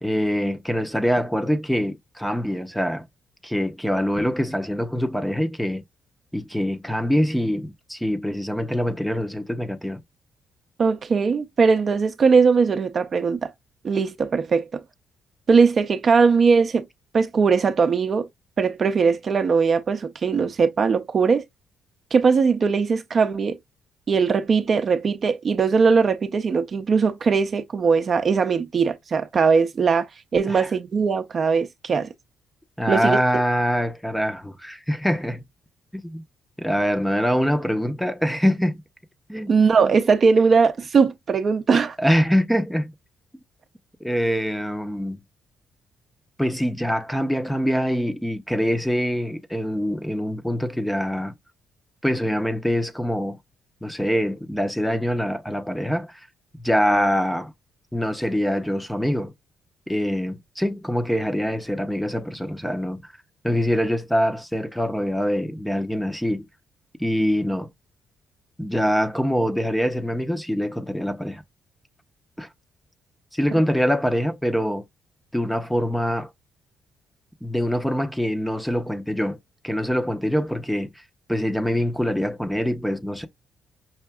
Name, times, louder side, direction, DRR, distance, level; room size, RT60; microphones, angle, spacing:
voice 1, 0.0-3.1 3.4-5.8 6.3-10.0 30.5-30.7 32.8-35.4 35.9-36.2 36.6-38.8 39.3-39.5 42.0-42.9 44.0-45.2 46.4-51.3 52.0-53.4 53.8-56.1 56.6-57.5 57.9-59.3 59.9-63.1 63.4-66.5 67.0-67.7 68.6-71.4 72.4-72.5 73.3-74.8 75.3-76.3 77.4-79.4 79.6-80.9 81.3-83.3, equal, 5° left, 0.6 m, -24 dB
voice 2, 10.8-13.5 13.8-14.8 15.5-16.9 17.1-18.3 18.6-21.4 22.1-23.6 24.1-32.1 32.9-33.2 39.5-42.0, right 5 dB, 45° right, 0.5 m, -20 dB
5.6 x 2.5 x 2.2 m
cardioid pair, 90°, 0 cm